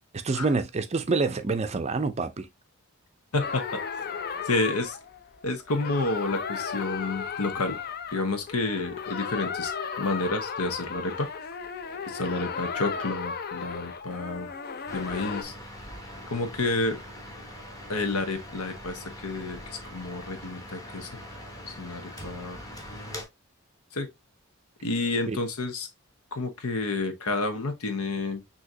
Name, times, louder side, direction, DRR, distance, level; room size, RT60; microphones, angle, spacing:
voice 1, 0.2-2.5 25.3-25.4, right 3 dB, 30° right, 0.4 m, -27 dB
voice 2, 3.3-3.8 4.4-5.0 5.4-7.8 8.1-9.7 10.0-11.3 12.1-14.5 14.9-15.5 16.3-17.0 17.9-21.1 21.7-22.6 23.9-24.1 24.8-25.9 26.3-28.4, left 2 dB, 85° left, 1.0 m, -30 dB
sound 1, 3.4-15.4, left 6 dB, 45° left, 0.5 m, -35 dB
sound 2, 14.9-23.2, equal, 15° left, 0.9 m, -42 dB
6.2 x 2.8 x 2.7 m
head